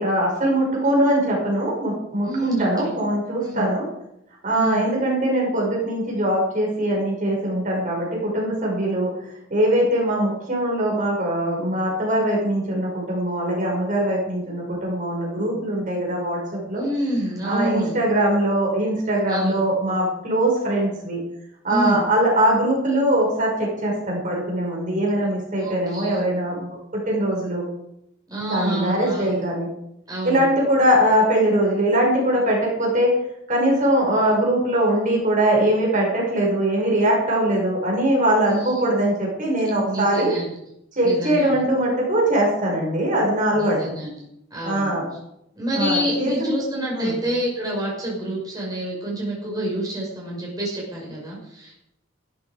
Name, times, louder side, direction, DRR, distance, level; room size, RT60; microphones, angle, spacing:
voice 1, 0.0-3.9 4.4-9.1 9.5-16.8 17.4-21.2 21.6-26.7 27.1-27.6 28.5-29.7 30.2-33.1 33.5-40.3 41.0-43.9 44.6-45.1 45.8-46.5 46.9-47.1, right 1 dB, 40° right, -2 dB, 5.8 m, -21 dB
voice 2, 2.2-3.0 3.4-3.7 4.5-4.9 16.7-18.0 19.3-19.6 21.7-22.0 25.6-26.2 28.3-29.5 30.1-30.4 38.6-38.8 39.8-40.5 41.0-41.6 43.5-44.2 44.5-45.0 45.6-51.8, right 1 dB, 20° right, -3 dB, 5.5 m, -28 dB
15.5 x 13.5 x 5.1 m, 0.79 s
head